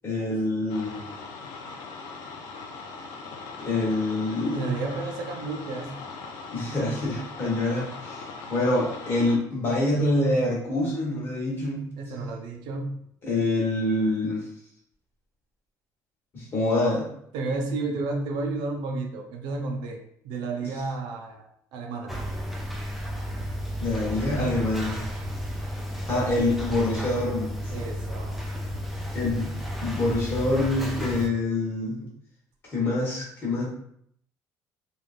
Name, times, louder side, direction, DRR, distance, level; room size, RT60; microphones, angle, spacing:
voice 1, 0.0-1.2 3.6-4.6 6.5-8.2 8.5-11.8 13.2-14.4 16.3-17.1 23.8-25.0 26.1-27.6 29.1-29.5 29.8-32.1 32.7-33.7, left 2 dB, 35° left, -5 dB, 1.1 m, -26 dB
sound 1, 0.7-9.4, left 4 dB, 65° left, 0.4 m, -40 dB
voice 2, 4.5-5.9 12.0-13.0 17.3-20.0 20.2-22.2 27.7-28.4, right 3 dB, 85° right, 4 dB, 0.5 m, -31 dB
sound 2, 22.1-31.3, equal, ahead, 0.3 m, -32 dB
3.2 x 2.4 x 2.4 m, 0.68 s
cardioid pair, 165°, 7 cm